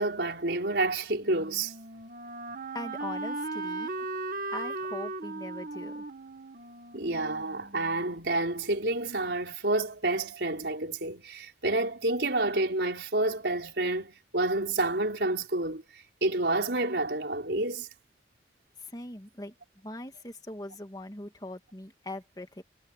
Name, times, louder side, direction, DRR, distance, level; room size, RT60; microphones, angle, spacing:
voice 1, 0.0-1.7 6.9-15.8 16.2-17.9, right 2 dB, 75° right, 4.2 m, -29 dB
Wind instrument woodwind instrument, 1.2-8.0, right 2 dB, 50° right, 1.6 m, -37 dB
voice 2, 2.7-3.9 4.5-6.0 18.8-22.6, left 2 dB, 20° left, 2.3 m, -41 dB
head